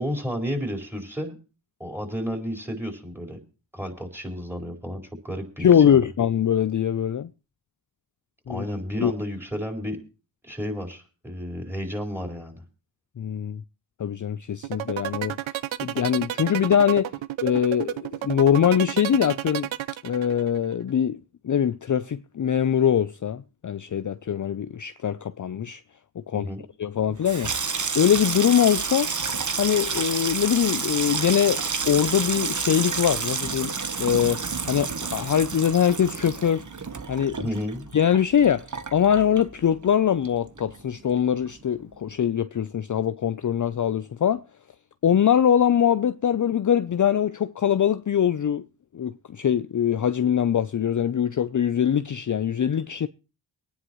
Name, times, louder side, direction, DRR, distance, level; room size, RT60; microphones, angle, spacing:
voice 1, 0.0-1.3 1.8-3.4 3.7-6.0 8.5-10.0 10.4-12.6 26.3-26.6 37.4-37.8, equal, 5° right, 4.8 m, -32 dB
voice 2, 5.6-7.3 8.5-8.6 9.0-9.1 13.2-13.6 14.0-15.4 15.8-17.1 17.4-19.7 20.0-21.2 21.4-25.8 26.2-26.5 26.8-27.5 27.9-29.1 29.5-36.7 37.1-37.5 37.9-38.7 38.9-44.4 45.0-48.6 48.9-53.1, left 9 dB, 40° left, 0.6 m, -22 dB
sound 1, 14.6-20.6, right 13 dB, 85° right, 0.6 m, -30 dB
Water tap faucet / Sink (filling or washing), 27.1-40.0 40.2-40.9 41.2-41.5, right 5 dB, 40° right, 1.1 m, -30 dB
24.0 x 9.8 x 3.1 m
cardioid pair, 45°, 46 cm